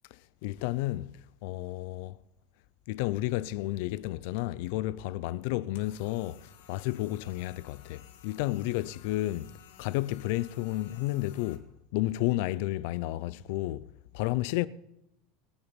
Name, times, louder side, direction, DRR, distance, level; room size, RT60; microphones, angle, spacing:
voice 1, 0.4-2.2 2.9-9.5 9.8-11.7 11.9-13.9 14.1-14.7, left 17 dB, 60° left, 0.5 m, -31 dB
sound 1, 5.7-11.6, left 10 dB, 85° left, 2.0 m, -56 dB
20.0 x 6.8 x 8.9 m
supercardioid pair, 160°, 0 cm